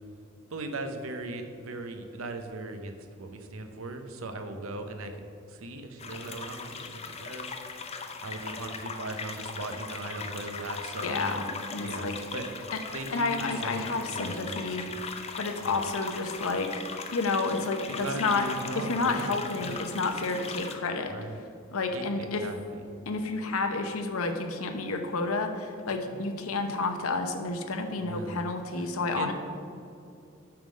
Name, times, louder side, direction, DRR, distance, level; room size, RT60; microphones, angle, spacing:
voice 1, 0.5-7.7 8.2-11.4 11.7-15.0 15.6-15.8 17.9-19.8 21.1-21.4 21.9-22.9 25.9-26.2 28.0-28.3 28.7-29.3, right 2 dB, 75° right, 6 dB, 0.8 m, -39 dB
sound 1, 6.0-20.8, left 5 dB, 30° left, 0.5 m, -39 dB
voice 2, 11.0-12.2 13.1-14.9 15.4-16.7 17.1-18.5 18.8-21.1 21.7-22.5 23.1-29.3, left 3 dB, 80° left, 6 dB, 0.8 m, -30 dB
8.8 x 3.7 x 6.3 m, 2.6 s
head